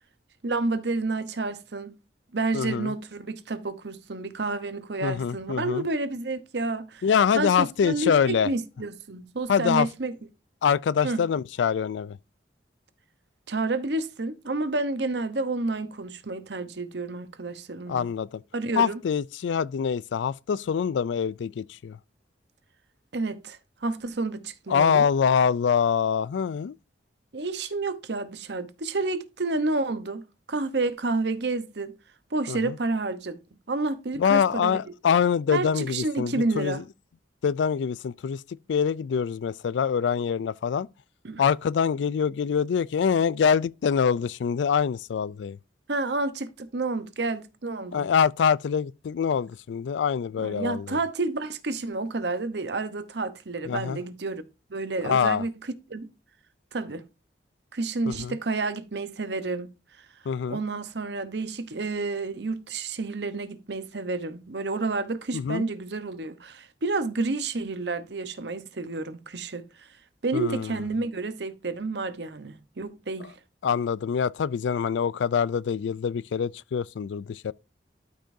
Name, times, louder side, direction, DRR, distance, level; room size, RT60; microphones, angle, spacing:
voice 1, 0.4-1.9 2.3-7.0 7.4-10.1 11.0-11.3 13.5-18.1 18.5-19.0 23.1-25.1 27.3-32.0 32.3-33.4 33.7-34.9 35.5-36.8 41.2-41.4 45.9-48.1 50.4-54.4 54.7-56.1 56.7-57.0 57.7-59.7 60.5-69.9 70.2-73.3, right 3 dB, 70° right, 0.9 m, -30 dB
voice 2, 2.5-2.9 5.0-5.8 7.0-8.5 9.5-9.9 10.6-12.2 17.9-18.4 18.8-22.0 24.7-26.8 32.5-32.8 34.2-36.8 37.4-38.4 38.7-40.9 41.4-45.6 47.9-51.0 53.7-54.0 55.0-55.4 58.1-58.4 60.3-60.6 65.3-65.6 70.3-70.7 73.6-77.5, left 7 dB, 85° left, 0.3 m, -25 dB
12.5 x 5.2 x 2.7 m
head